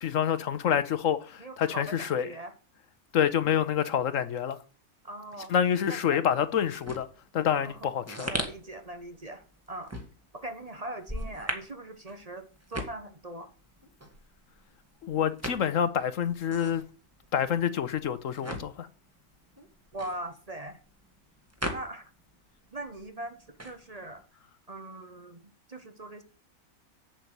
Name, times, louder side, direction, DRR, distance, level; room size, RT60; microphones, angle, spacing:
voice 1, 0.0-2.3 3.1-4.6 5.5-7.1 7.3-8.3 15.0-16.8 17.3-18.9, left 8 dB, 70° left, 1.2 m, -27 dB
voice 2, 1.4-2.5 5.0-5.5 5.9-6.2 7.5-7.9 8.3-9.9 10.3-13.5 19.9-20.8 21.7-22.1 22.7-24.2 24.7-26.2, right 1 dB, 30° right, 1.0 m, -41 dB
sound 1, 6.6-22.4 22.6-24.2, equal, 10° right, 1.8 m, -39 dB
7.9 x 7.7 x 6.7 m
omnidirectional pair, 1.4 m